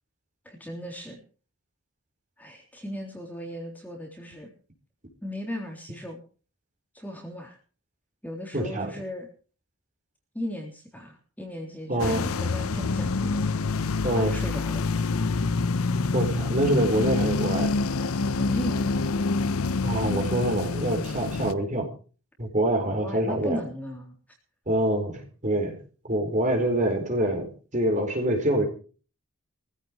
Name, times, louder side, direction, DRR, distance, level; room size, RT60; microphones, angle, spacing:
voice 1, 0.4-1.2 2.4-4.5 5.2-6.2 6.9-7.6 8.2-9.3 10.3-13.4 14.0-14.9 18.4-19.1 22.9-24.2, equal, 10° left, 0 dB, 3.4 m, -37 dB
voice 2, 8.5-8.9 11.9-12.2 14.0-14.3 16.1-17.7 19.8-21.9 22.4-23.6 24.7-25.8 26.1-28.7, right 1 dB, 35° right, 3 dB, 4.3 m, -25 dB
sound 1, 12.0-21.5, left 3 dB, 80° left, 0.7 m, -27 dB
21.5 x 15.5 x 3.1 m, 0.38 s
head